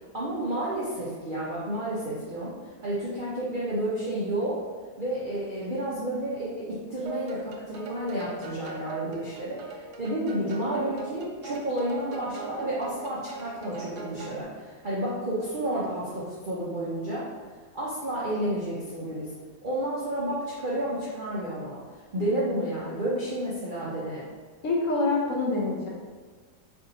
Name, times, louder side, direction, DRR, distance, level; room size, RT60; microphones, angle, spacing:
voice 1, 0.1-2.5 2.8-4.6 5.0-17.3 17.7-19.3 19.6-21.8 22.1-24.3, right 1 dB, 60° right, -7 dB, 0.5 m, -31 dB
sound 1, 7.1-14.4, right 5 dB, 75° right, 1.1 m, -39 dB
voice 2, 24.6-25.9, left 3 dB, 65° left, -3 dB, 0.9 m, -26 dB
3.5 x 2.6 x 3.9 m, 1.5 s
omnidirectional pair, 1.7 m